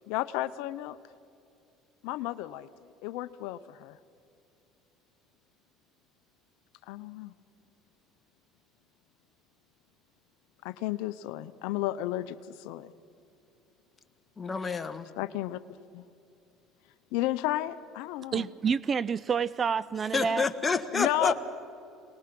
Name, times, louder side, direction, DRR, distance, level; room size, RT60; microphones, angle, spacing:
voice 1, 0.1-1.0 2.0-4.0 6.9-7.3 10.6-12.9 15.2-15.6 15.9-16.0 17.1-18.5 20.9-21.3, left 15 dB, 80° left, 13 dB, 0.6 m, -33 dB
voice 2, 14.4-15.1 20.1-21.3, left 4 dB, 25° left, 8 dB, 1.5 m, -28 dB
voice 3, 18.3-20.5, right 6 dB, 35° right, 20 dB, 0.4 m, -28 dB
26.5 x 19.5 x 6.0 m, 2.7 s
supercardioid pair, 95°, 0 cm